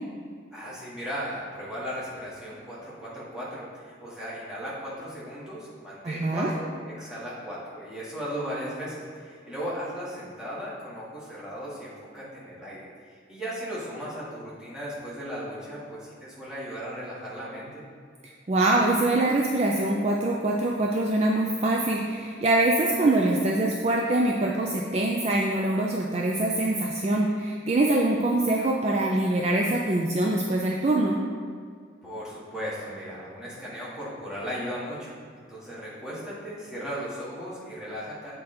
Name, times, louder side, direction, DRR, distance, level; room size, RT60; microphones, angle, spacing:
voice 1, 0.5-17.8 32.0-35.1 35.5-38.3, equal, 5° right, -9 dB, 1.5 m, -36 dB
voice 2, 6.0-6.5 18.5-31.2, right 2 dB, 35° right, -1 dB, 0.3 m, -24 dB
7.5 x 3.7 x 4.3 m, 2.1 s
head